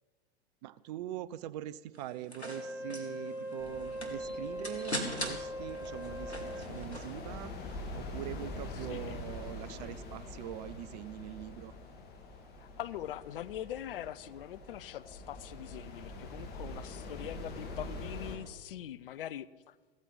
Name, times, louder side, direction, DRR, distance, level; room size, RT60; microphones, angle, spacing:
voice 1, 0.6-11.7, right 13 dB, 40° right, 18 dB, 0.6 m, -43 dB
sound 1, 1.9-7.2, equal, 90° left, 2.2 m, -42 dB
Wind instrument woodwind instrument, 2.4-6.8, right 1 dB, 5° right, 1.7 m, -41 dB
sound 2, 3.6-18.4, left 2 dB, 30° left, 2.6 m, -45 dB
voice 2, 8.9-9.2 9.8-10.0 12.6-19.7, left 11 dB, 55° left, 16 dB, 0.6 m, -43 dB
15.5 x 13.5 x 5.5 m, 1.3 s
figure-of-eight pair, 95°, 32 cm